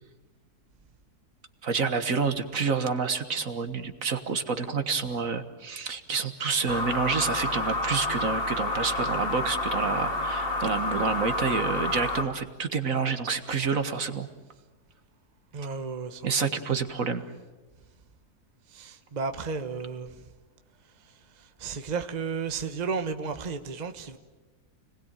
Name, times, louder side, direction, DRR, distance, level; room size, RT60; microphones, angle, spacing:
voice 1, 1.6-14.3 16.2-17.3, right 5 dB, 60° right, 1.9 m, -28 dB
sound 1, 6.7-12.2, left 2 dB, 35° left, 2.5 m, -29 dB
voice 2, 15.5-16.6 18.7-20.2 21.0-24.2, right 5 dB, 30° right, 1.2 m, -34 dB
30.0 x 20.0 x 9.0 m
omnidirectional pair, 1.7 m